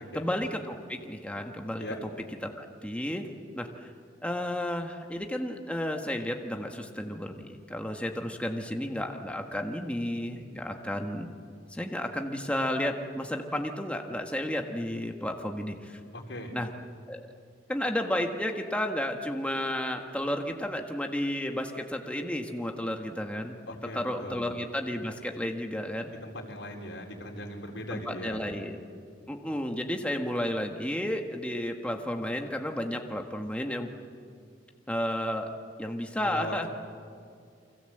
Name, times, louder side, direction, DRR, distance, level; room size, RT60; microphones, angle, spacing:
voice 1, 0.1-1.9 2.4-3.3 3.6-3.9 4.2-11.3 11.7-16.0 16.5-16.7 17.1-17.3 17.7-23.6 23.9-26.1 27.9-28.8 29.3-33.9 34.9-35.5 35.8-36.7, left 1 dB, 5° left, 3 dB, 1.6 m, -32 dB
voice 2, 16.1-16.6 23.7-24.4 26.2-28.4 36.2-36.7, left 1 dB, 85° left, 1 dB, 4.4 m, -39 dB
29.5 x 24.5 x 7.9 m, 2.3 s
head